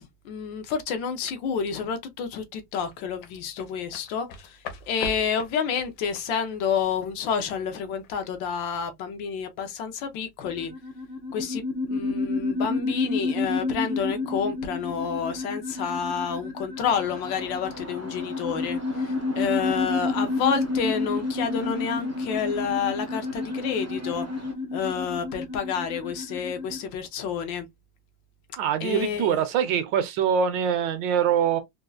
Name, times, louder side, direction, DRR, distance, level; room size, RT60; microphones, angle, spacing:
voice 1, 0.0-4.6 4.9-10.7 11.3-24.3 24.7-27.7 28.8-29.4, left 7 dB, 85° left, 1.4 m, -29 dB
sound 1, 2.9-8.1 8.4-8.6, left 3 dB, 70° left, 1.3 m, -41 dB
sound 2, 10.4-26.8, left 3 dB, 55° left, 0.7 m, -30 dB
sound 3, 16.8-24.5, right 1 dB, 20° right, 0.4 m, -43 dB
voice 2, 28.6-31.6, right 8 dB, 80° right, 1.4 m, -24 dB
4.3 x 2.3 x 2.4 m
omnidirectional pair, 2.0 m